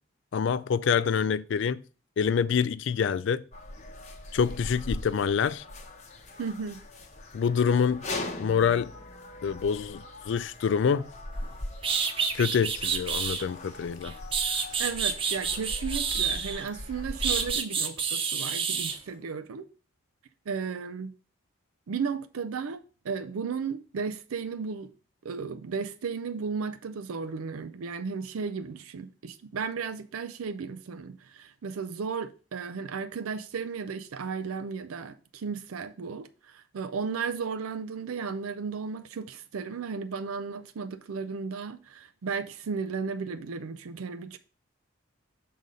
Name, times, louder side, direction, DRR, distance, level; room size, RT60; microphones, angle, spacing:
voice 1, 0.3-1.8 2.2-3.4 4.3-5.6 7.3-8.0 8.4-8.9 9.4-11.0 12.3-14.1, left 6 dB, 60° left, 0.3 m, -26 dB
sound 1, 3.5-17.5, left 1 dB, 35° left, 0.8 m, -40 dB
voice 2, 6.4-6.8 14.8-19.7 20.5-21.1 21.9-24.9 25.2-44.4, right 5 dB, 85° right, 0.5 m, -34 dB
sound 2, 11.4-11.5 11.8-13.4 14.0-16.7 17.2-19.0, right 6 dB, 25° right, 0.5 m, -29 dB
6.4 x 3.9 x 5.3 m
head